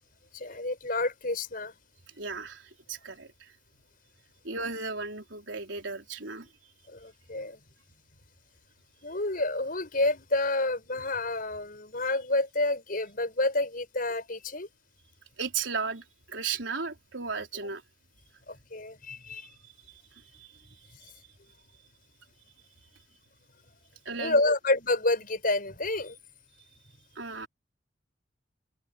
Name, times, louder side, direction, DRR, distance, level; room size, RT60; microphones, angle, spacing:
voice 1, 0.3-1.7 6.9-7.6 9.0-14.7 18.5-19.5 24.2-26.2, left 2 dB, 50° left, 6.7 m, -29 dB
voice 2, 2.2-3.5 4.4-6.5 15.4-17.8 20.3-20.5 24.1-24.5 27.2-27.5, right 5 dB, 85° right, 4.1 m, -35 dB
head